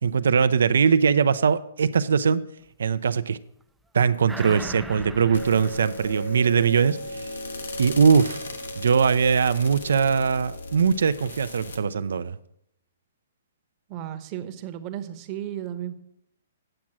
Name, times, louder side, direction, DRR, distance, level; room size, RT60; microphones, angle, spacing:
voice 1, 0.0-2.4 2.8-3.4 3.9-7.3 7.8-8.4 8.8-12.4, right 6 dB, 75° right, 0.4 m, -21 dB
sound 1, 4.3-7.2 7.6-7.7, right 2 dB, 5° right, 0.3 m, -40 dB
sound 2, 5.3-11.8, left 1 dB, 85° left, 1.4 m, -36 dB
voice 2, 13.9-15.9, right 11 dB, 35° right, 0.9 m, -34 dB
8.8 x 6.1 x 6.0 m
hypercardioid pair, 130°, 0 cm